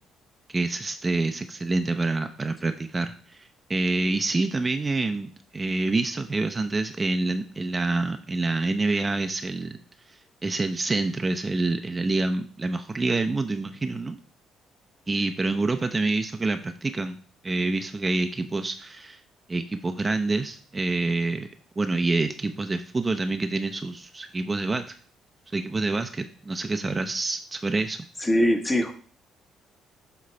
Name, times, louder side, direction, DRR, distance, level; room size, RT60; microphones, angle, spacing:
voice 1, 0.5-9.8 10.1-14.2 15.1-17.2 17.4-19.2 19.5-21.5 21.8-24.9 25.5-28.0, right 3 dB, 25° right, 7 dB, 0.6 m, -27 dB
voice 2, 28.2-28.9, left 1 dB, 20° left, 5 dB, 1.2 m, -22 dB
7.5 x 3.1 x 5.5 m, 0.43 s
hypercardioid pair, 55°, 0 cm